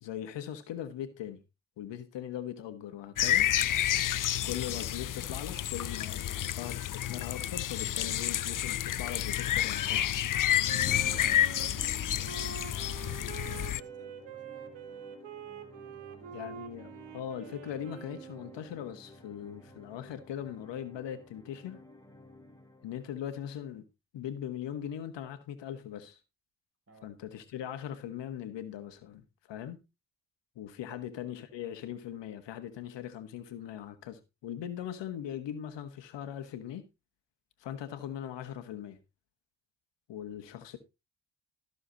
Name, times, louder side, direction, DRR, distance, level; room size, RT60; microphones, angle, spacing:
voice 1, 0.0-1.4 1.8-3.5 4.4-10.1 16.3-21.8 22.8-23.8 24.1-26.2 27.0-29.8 30.5-36.8 37.6-39.0 40.1-40.8, left 10 dB, 75° left, 1.5 m, -40 dB
sound 1, 3.2-13.8, left 11 dB, 45° left, 0.6 m, -30 dB
voice 2, 6.2-6.6 11.0-15.2 15.7-16.5 26.9-27.1 30.9-31.0, right 2 dB, 30° right, 6.4 m, -58 dB
Wind instrument woodwind instrument, 10.6-18.8, right 9 dB, 75° right, 1.9 m, -46 dB
sound 2, 11.7-23.7, left 1 dB, 10° left, 3.0 m, -54 dB
14.0 x 7.0 x 4.0 m
hypercardioid pair, 45°, 44 cm